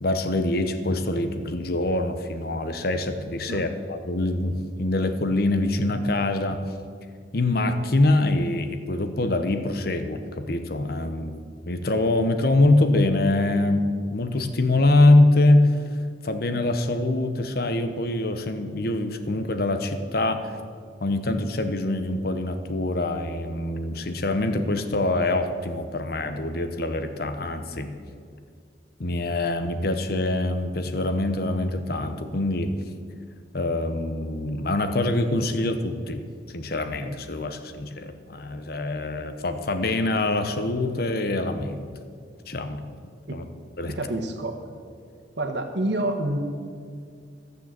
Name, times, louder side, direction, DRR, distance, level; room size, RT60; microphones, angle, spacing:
voice 1, 0.0-6.6 7.3-13.8 14.1-15.8 16.2-20.6 21.0-27.9 29.0-32.7 33.5-41.9 42.5-42.8 43.3-43.5 43.8-44.0, left 2 dB, 55° left, 8 dB, 0.9 m, -24 dB
voice 2, 43.9-44.6 45.4-46.4, right 1 dB, 70° right, 4 dB, 1.4 m, -28 dB
14.0 x 6.8 x 7.6 m, 2.2 s
head